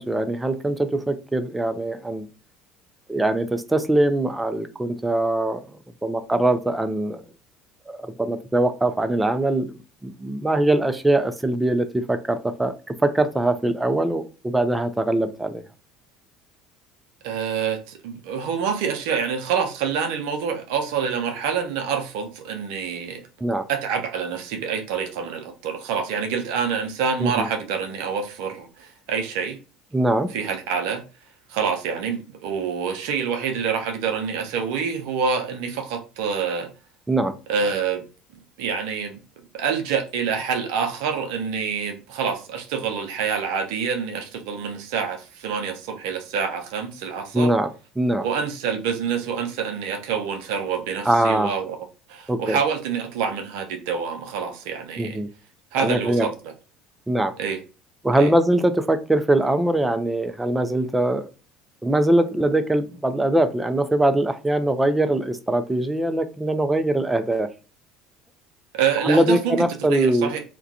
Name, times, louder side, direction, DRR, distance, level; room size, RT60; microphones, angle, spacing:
voice 1, 0.0-2.3 3.1-5.6 6.0-7.2 7.9-9.7 10.0-12.7 13.0-15.6 23.4-23.6 27.2-27.5 29.9-30.3 37.1-37.3 47.3-47.7 48.0-48.3 51.1-51.5 52.3-52.6 55.0-55.3 55.8-56.3 57.1-57.3 58.0-61.3 61.8-67.5 69.0-70.3, right 1 dB, 10° right, 0.4 m, -22 dB
voice 2, 17.2-23.2 23.7-29.6 30.3-31.0 31.5-36.7 37.5-38.0 38.6-39.2 39.5-47.5 48.2-51.8 52.1-55.2 55.7-56.5 57.4-57.6 58.2-58.3 68.7-70.4, right 6 dB, 70° right, 0.5 m, -27 dB
2.3 x 2.2 x 2.6 m
hypercardioid pair, 65°, 0 cm